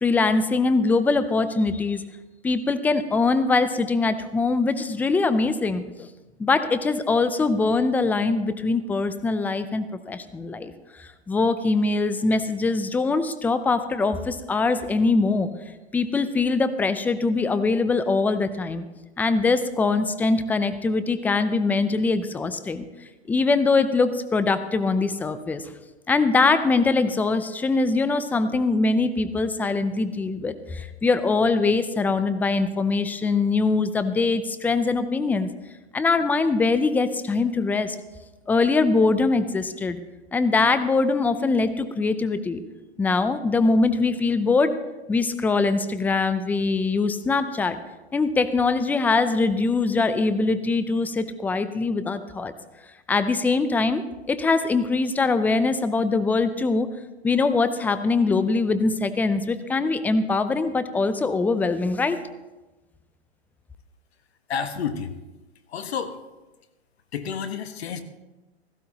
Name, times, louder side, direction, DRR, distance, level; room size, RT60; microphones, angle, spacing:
voice 1, 0.0-2.0 2.4-5.8 6.4-10.7 11.0-15.5 15.9-18.8 19.2-22.8 23.3-25.6 26.1-35.5 35.9-38.0 38.5-40.0 40.3-42.6 43.0-44.7 45.1-47.8 48.1-52.5 53.1-56.9 57.2-62.2, left 3 dB, 5° left, 12 dB, 0.4 m, -22 dB
voice 2, 64.5-65.2 65.7-66.2 67.1-68.0, left 7 dB, 70° left, 8 dB, 1.4 m, -30 dB
17.0 x 14.5 x 2.9 m, 1.1 s
hypercardioid pair, 120°, 33 cm